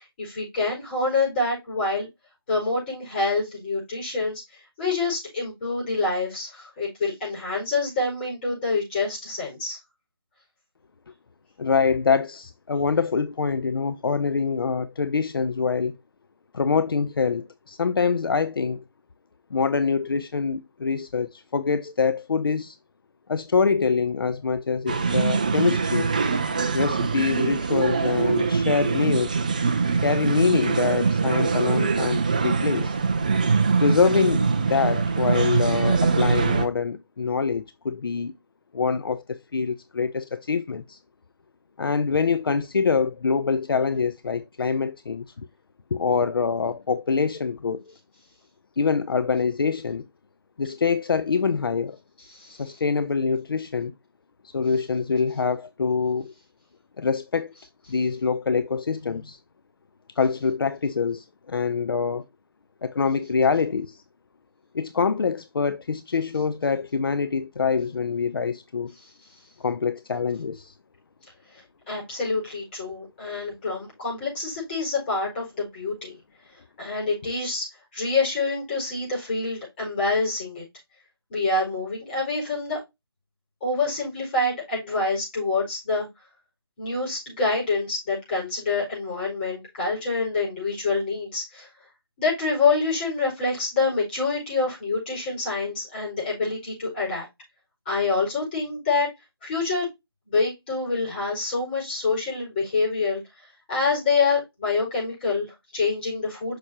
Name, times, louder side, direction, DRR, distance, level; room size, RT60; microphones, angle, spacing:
voice 1, 0.0-2.1 2.5-9.8 52.3-52.8 71.9-76.1 76.8-77.7 77.9-80.6 81.3-82.8 83.6-86.1 86.8-91.7 92.2-97.2 97.8-99.1 99.4-99.9 100.3-103.2 103.7-106.6, left 3 dB, 25° left, 4.9 m, -26 dB
voice 2, 11.6-16.0 16.5-18.8 19.5-22.8 23.3-26.1 26.7-29.4 30.0-33.0 33.8-38.3 38.7-41.0 41.8-45.5 45.9-47.8 48.8-50.0 50.6-52.0 52.5-53.9 54.4-56.3 57.0-57.5 57.9-59.4 60.2-62.2 62.8-64.0 64.7-68.9 69.6-70.7, left 5 dB, 65° left, 0.5 m, -25 dB
sound 1, 24.9-36.7, right 4 dB, 20° right, 0.4 m, -23 dB
6.5 x 6.1 x 2.9 m
figure-of-eight pair, 165°, 13 cm